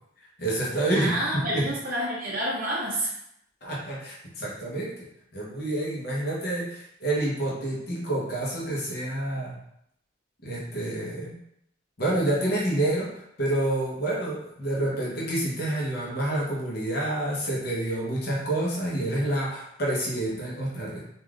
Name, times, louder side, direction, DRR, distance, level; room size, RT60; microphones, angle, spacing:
voice 1, 0.4-1.7 3.6-9.6 10.4-11.4 12.0-13.1 13.4-21.0, right 1 dB, 55° left, -5 dB, 0.7 m, -28 dB
voice 2, 0.9-3.1, right 1 dB, 50° right, -5 dB, 0.5 m, -28 dB
3.4 x 2.4 x 2.3 m, 0.76 s
head